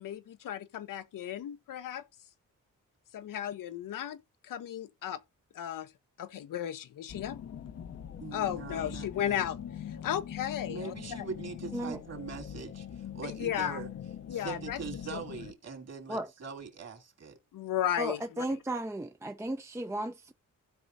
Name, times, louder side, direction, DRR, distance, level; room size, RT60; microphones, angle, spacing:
voice 1, 0.0-2.0 3.1-5.2 5.5-5.9 6.2-7.4 8.3-9.6 10.0-10.9 13.2-13.8 14.3-14.8 15.1-15.2 17.5-18.4, left 11 dB, 85° left, 0.8 m, -35 dB
sound 1, 7.1-15.5, left 9 dB, 50° left, 0.7 m, -42 dB
voice 2, 8.2-9.4 10.6-13.9 14.3-17.4, right 5 dB, 50° right, 2.6 m, -42 dB
voice 3, 18.0-20.3, right 1 dB, 10° right, 0.5 m, -35 dB
15.5 x 5.2 x 2.6 m
wide cardioid pair, 115°, 32 cm